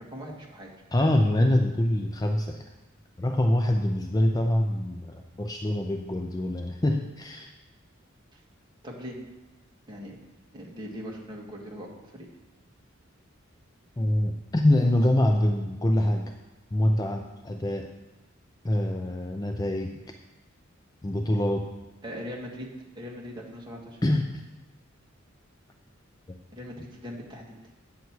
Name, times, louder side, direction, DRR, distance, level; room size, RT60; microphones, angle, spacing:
voice 1, 0.0-0.7 8.3-8.4 8.8-9.2 9.9-10.2 10.5-12.3 22.0-22.7 23.0-24.0 26.5-27.6, equal, 20° right, -2 dB, 1.8 m, -40 dB
voice 2, 0.9-2.6 3.2-7.5 14.0-16.3 16.7-17.9 18.6-20.0 21.0-21.7 24.0-24.4 26.3-26.4, left 1 dB, 20° left, 4 dB, 0.5 m, -25 dB
9.3 x 7.2 x 4.6 m, 1.1 s
head